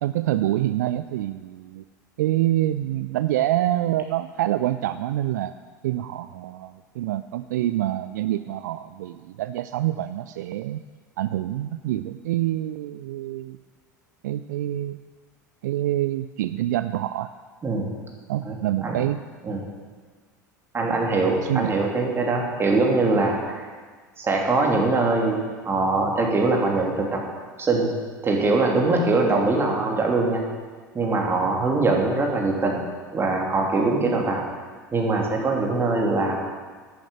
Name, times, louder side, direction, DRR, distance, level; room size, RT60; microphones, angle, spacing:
voice 1, 0.0-1.8 2.2-5.5 5.8-10.8 11.2-13.6 14.2-15.0 15.6-17.3 18.3-19.2 21.4-21.7, right 14 dB, 65° right, 12 dB, 0.4 m, -26 dB
voice 2, 18.4-19.0 19.4-19.6 20.7-23.7 24.2-27.2 27.6-27.9 28.2-30.4 30.9-32.9 33.1-34.4 34.9-36.4, right 3 dB, 25° right, 0 dB, 2.9 m, -22 dB
11.0 x 9.5 x 7.8 m, 1.5 s
figure-of-eight pair, 75°, 10 cm